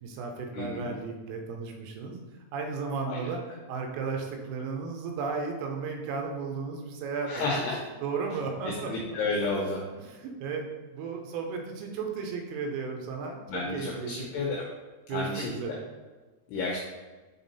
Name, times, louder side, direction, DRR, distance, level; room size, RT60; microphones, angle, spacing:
voice 1, 0.0-2.2 2.5-3.4 3.7-7.5 8.0-8.9 10.0-10.7 10.9-14.3 15.1-15.8, right 4 dB, 90° right, 2 dB, 3.5 m, -34 dB
voice 2, 0.5-0.9 3.1-3.2 7.3-7.8 8.6-9.8 13.5-14.6 15.1-15.5 16.5-16.8, left 3 dB, 85° left, -2 dB, 2.3 m, -31 dB
7.9 x 3.7 x 4.1 m, 1.3 s
omnidirectional pair, 5.7 m